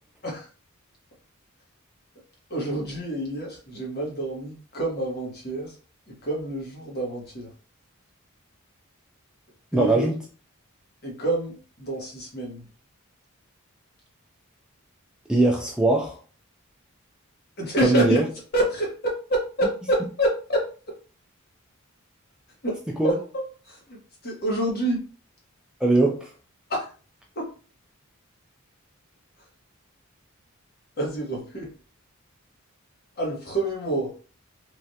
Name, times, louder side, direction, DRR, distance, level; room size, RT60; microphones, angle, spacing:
voice 1, 2.5-5.7 6.1-7.5 9.7-10.0 11.0-12.7 17.6-18.2 18.5-20.6 22.6-22.8 23.0-25.0 26.7-26.9 27.3-27.5 31.0-31.7 33.2-34.1, right 1 dB, 50° left, 1.1 m, -27 dB
voice 2, 9.7-10.1 15.3-16.2 17.8-18.2 23.0-23.2 25.8-26.3, right 2 dB, 5° right, 0.4 m, -20 dB
3.2 x 2.4 x 2.7 m
head